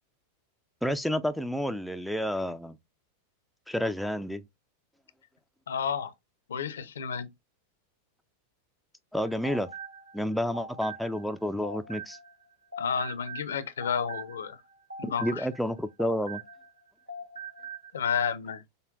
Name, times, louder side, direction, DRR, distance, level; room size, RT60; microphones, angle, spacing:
voice 1, 0.8-2.8 3.7-4.4 9.1-9.7 10.1-12.2 15.0-16.4, equal, ahead, 0.3 m, -30 dB
voice 2, 5.7-6.1 6.5-7.3 12.8-14.6 15.0-15.5 17.9-18.7, left 7 dB, 65° left, 0.5 m, -31 dB
sound 1, 9.2-12.4 12.7-16.8 17.1-17.9, right 3 dB, 85° right, 0.8 m, -43 dB
5.2 x 2.2 x 2.4 m
figure-of-eight pair, 90°, 0 cm